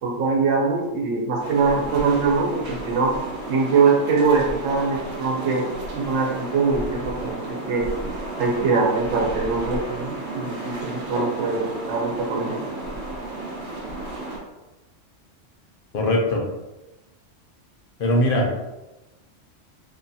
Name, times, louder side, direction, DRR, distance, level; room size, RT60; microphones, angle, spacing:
voice 1, 0.0-3.1 3.5-5.6 5.9-7.9 8.4-12.6, right 4 dB, 90° right, -1 dB, 1.1 m, -22 dB
sound 1, 1.4-14.4, right 2 dB, 65° right, 1.0 m, -33 dB
voice 2, 15.9-16.4 18.0-18.5, left 1 dB, 55° left, 0 dB, 0.7 m, -20 dB
2.8 x 2.3 x 2.6 m, 1.0 s
omnidirectional pair, 1.3 m